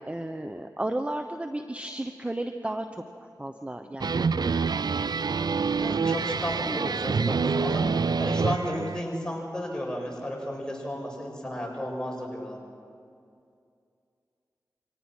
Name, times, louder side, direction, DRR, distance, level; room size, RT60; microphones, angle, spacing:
voice 1, 0.1-2.8 3.4-4.8 6.7-6.9, right 1 dB, 15° right, 7 dB, 1.0 m, -33 dB
sound 1, 4.0-9.0, right 5 dB, 65° right, 0.4 m, -26 dB
voice 2, 5.8-12.6, equal, 10° left, -1 dB, 7.4 m, -33 dB
24.5 x 18.5 x 6.2 m, 2.4 s
cardioid pair, 40°, 8 cm